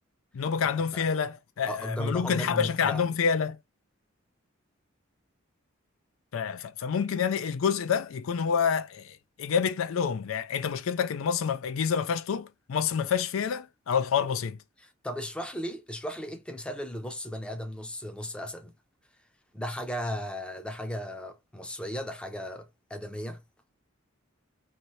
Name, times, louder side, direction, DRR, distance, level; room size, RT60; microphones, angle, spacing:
voice 1, 0.3-3.6 6.3-14.6, left 6 dB, 80° left, 0.4 m, -28 dB
voice 2, 1.7-3.0 14.8-18.7 19.5-23.4, equal, 5° left, 0.5 m, -36 dB
2.9 x 2.6 x 3.1 m
head